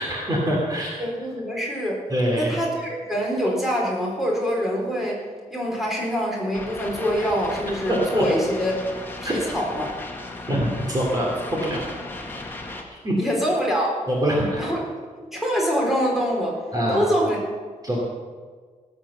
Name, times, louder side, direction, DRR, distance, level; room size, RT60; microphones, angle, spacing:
voice 1, 0.0-0.9 2.1-2.5 7.9-8.2 9.2-9.3 10.5-11.8 13.0-13.1 14.1-14.7 16.7-17.0 17.8-18.0, equal, 30° right, -3 dB, 2.9 m, -24 dB
voice 2, 1.0-2.0 2.4-5.2 5.5-8.8 9.2-9.9 13.2-14.1 14.6-14.8 15.2-16.6 16.9-17.4, equal, ahead, -3 dB, 4.0 m, -24 dB
sound 1, 6.5-12.8, left 2 dB, 15° left, 1.8 m, -36 dB
18.5 x 7.7 x 7.0 m, 1.5 s
wide cardioid pair, 145°, 13 cm